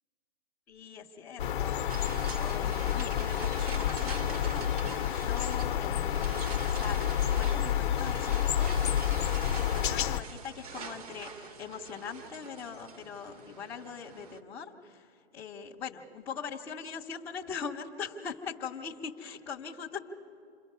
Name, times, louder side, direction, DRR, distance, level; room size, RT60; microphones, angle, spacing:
voice 1, 0.7-6.3 6.6-20.0, left 6 dB, 5° left, -7 dB, 0.5 m, -42 dB
sound 1, 1.4-10.2, left 10 dB, 55° left, 0.7 m, -29 dB
sound 2, 1.9-14.4, right 5 dB, 35° right, 0.8 m, -44 dB
27.5 x 22.0 x 5.4 m, 2.3 s
hypercardioid pair, 160°, 31 cm